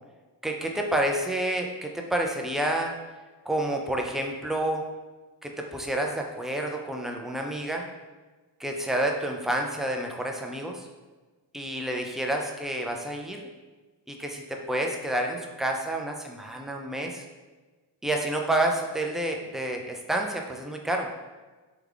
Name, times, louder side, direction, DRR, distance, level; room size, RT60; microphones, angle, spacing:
voice 1, 0.4-2.9 3.5-4.8 5.4-7.9 8.6-10.9 11.5-13.5 14.1-17.2 18.0-21.1, right 1 dB, ahead, 1 dB, 0.4 m, -29 dB
3.4 x 2.3 x 3.4 m, 1.3 s
cardioid pair, 50°, 45 cm